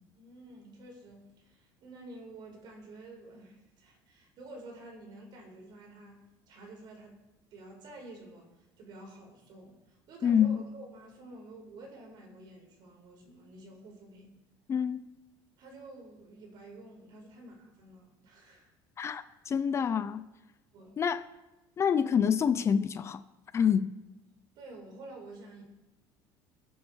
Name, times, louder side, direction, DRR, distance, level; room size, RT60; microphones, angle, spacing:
voice 1, 0.1-7.2 7.5-14.3 15.6-18.7 20.7-21.0 24.5-25.6, right 2 dB, 55° right, 5.0 m, -50 dB
voice 2, 10.2-10.6 14.7-15.1 19.0-20.2 21.0-21.2 21.8-23.2 23.5-24.0, left 7 dB, 30° left, 0.7 m, -27 dB
22.5 x 8.7 x 4.7 m
cardioid pair, 130°, 9 cm